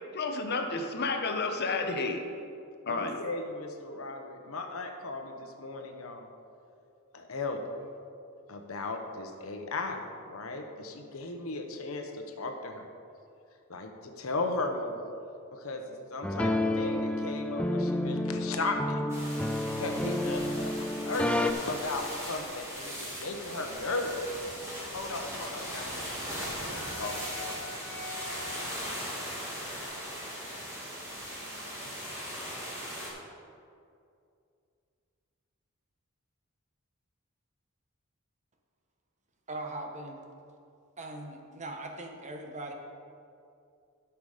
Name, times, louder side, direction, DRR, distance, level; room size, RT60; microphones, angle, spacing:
voice 1, 0.1-2.2 2.9-3.2, left 3 dB, 50° left, 5 dB, 0.9 m, -31 dB
voice 2, 2.8-6.3 7.1-7.6 8.5-10.0 10.3-12.9 13.7-15.0 15.5-15.8 16.1-19.0 19.5-21.3 21.6-24.1 24.9-27.6, left 3 dB, 80° left, 4 dB, 1.0 m, -36 dB
sound 1, 16.2-21.5, left 1 dB, 5° left, 0.4 m, -30 dB
sound 2, 19.1-33.1, equal, 15° right, 2.4 m, -39 dB
Wind instrument woodwind instrument, 25.5-29.7, left 2 dB, 30° left, 2.6 m, -46 dB
voice 3, 39.5-40.2 41.0-42.7, right 2 dB, 35° right, 3 dB, 1.0 m, -40 dB
12.0 x 5.9 x 5.0 m, 2.5 s
head